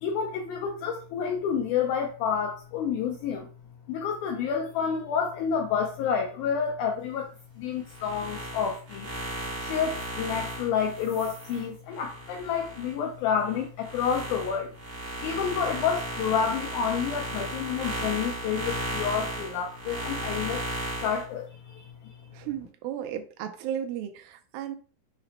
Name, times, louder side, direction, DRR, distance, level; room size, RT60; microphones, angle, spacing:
voice 1, 0.0-3.5 3.9-9.1 9.6-14.7 15.2-20.6 21.0-21.8, left 7 dB, 90° left, 1.7 m, -29 dB
sound 1, 7.9-13.0 13.4-21.2, right 1 dB, 50° right, 0.9 m, -35 dB
voice 2, 22.3-24.8, right 10 dB, 80° right, 2.2 m, -34 dB
5.8 x 2.0 x 4.0 m
omnidirectional pair, 4.2 m